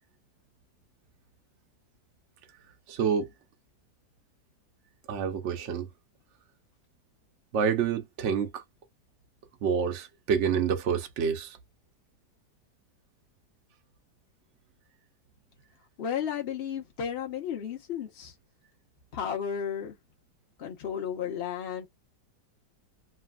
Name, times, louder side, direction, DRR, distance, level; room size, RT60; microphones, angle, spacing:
voice 1, 2.9-3.3 5.1-5.9 7.5-8.6 9.6-11.6, right 7 dB, 55° right, 0.9 m, -28 dB
voice 2, 16.0-18.3 19.1-19.9 20.6-21.9, left 8 dB, 40° left, 1.1 m, -33 dB
3.3 x 2.3 x 2.3 m
omnidirectional pair, 1.8 m